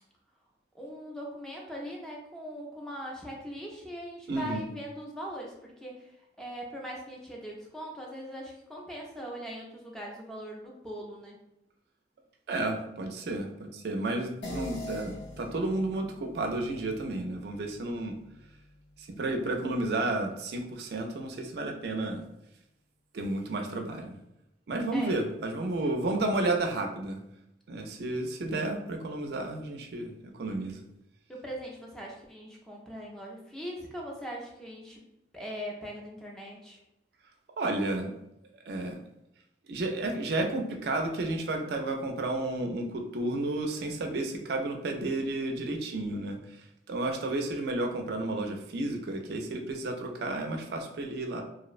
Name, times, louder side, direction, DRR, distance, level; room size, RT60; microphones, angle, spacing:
voice 1, 0.7-11.4 24.9-25.2 25.6-26.3 31.3-35.0 35.3-36.8, equal, 5° left, -2 dB, 0.4 m, -41 dB
voice 2, 4.3-4.6 12.5-18.1 19.0-22.2 23.1-24.1 24.7-27.2 27.7-30.1 30.4-30.8 37.6-38.1 38.7-39.0 39.7-46.4 46.9-51.4, right 2 dB, 60° right, 4 dB, 0.4 m, -32 dB
sound 1, 14.4-19.2, left 1 dB, 70° left, 0.6 m, -44 dB
2.6 x 2.0 x 2.4 m, 0.85 s
head